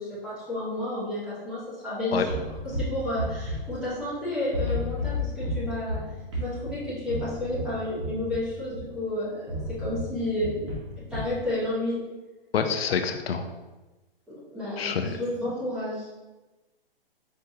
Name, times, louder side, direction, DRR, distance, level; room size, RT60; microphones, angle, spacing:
voice 1, 0.0-2.3 2.6-6.0 6.4-10.6 11.1-12.0 14.3-16.1, left 1 dB, 5° right, -12 dB, 0.8 m, -31 dB
sound 1, 2.3-4.2 4.5-9.0 9.5-11.4, left 1 dB, 30° right, 1.1 m, -33 dB
voice 2, 12.5-13.4 14.8-15.2, left 6 dB, 85° left, 6 dB, 0.6 m, -26 dB
4.6 x 3.4 x 2.8 m, 1.1 s
hypercardioid pair, 165°, 29 cm